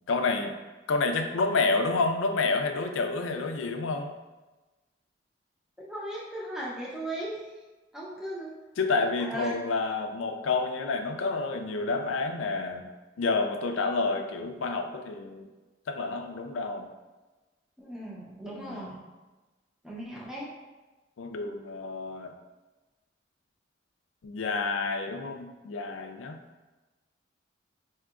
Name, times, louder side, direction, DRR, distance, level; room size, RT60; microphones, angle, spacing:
voice 1, 0.1-0.5 0.9-4.1 8.8-12.8 13.2-15.5 15.9-16.9 18.5-18.9 21.2-22.3 24.2-26.4, left 3 dB, 85° left, 5 dB, 0.4 m, -29 dB
voice 2, 5.9-7.4 7.9-8.5 9.2-9.5 17.8-19.0 19.8-20.5, right 1 dB, 5° right, -6 dB, 0.6 m, -37 dB
4.6 x 2.8 x 2.4 m, 1.2 s
head